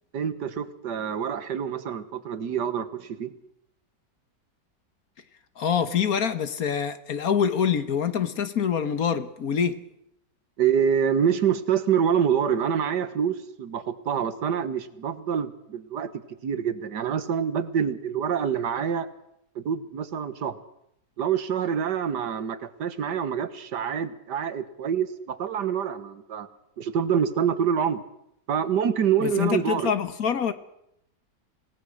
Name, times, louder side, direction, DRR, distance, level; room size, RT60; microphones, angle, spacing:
voice 1, 0.1-3.3 10.6-16.1 16.4-19.1 19.6-20.6 21.2-26.5 26.8-28.0 28.5-29.9, right 8 dB, 75° right, 1.8 m, -26 dB
voice 2, 5.6-9.8 29.2-30.5, left 7 dB, 60° left, 1.6 m, -25 dB
26.5 x 18.0 x 6.4 m
omnidirectional pair, 1.8 m